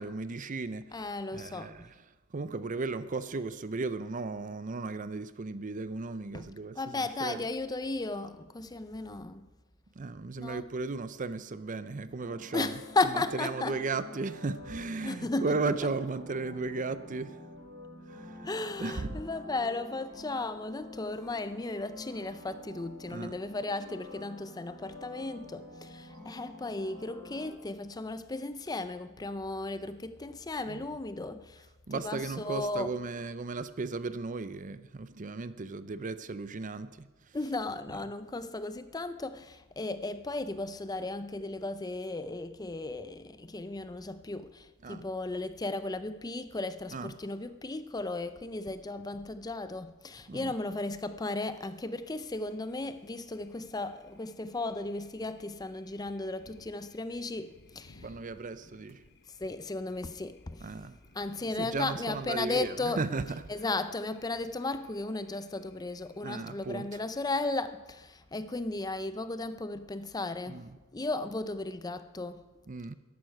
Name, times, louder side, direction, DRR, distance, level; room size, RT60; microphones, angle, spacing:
voice 1, 0.0-1.0 1.3-1.9 2.3-7.4 10.0-12.8 13.3-17.4 18.1-18.5 18.8-19.2 23.1-23.3 30.7-30.8 31.9-37.4 44.8-45.0 46.9-47.1 50.3-50.5 58.0-59.0 60.6-61.0 61.6-63.4 66.2-66.9 70.5-70.8 72.7-73.0, right 3 dB, 35° right, 0.5 m, -35 dB
voice 2, 0.9-1.9 6.3-6.5 6.7-9.5 10.4-10.7 12.5-13.8 15.0-15.9 18.4-33.0 37.3-58.2 59.3-60.8 61.1-70.7 70.9-72.4, left 2 dB, 20° left, 0.5 m, -35 dB
sound 1, 12.2-27.5, left 1 dB, 60° right, 5.3 m, -48 dB
Thunder, 52.0-67.6, left 2 dB, 50° left, 0.9 m, -62 dB
14.0 x 11.5 x 5.8 m
head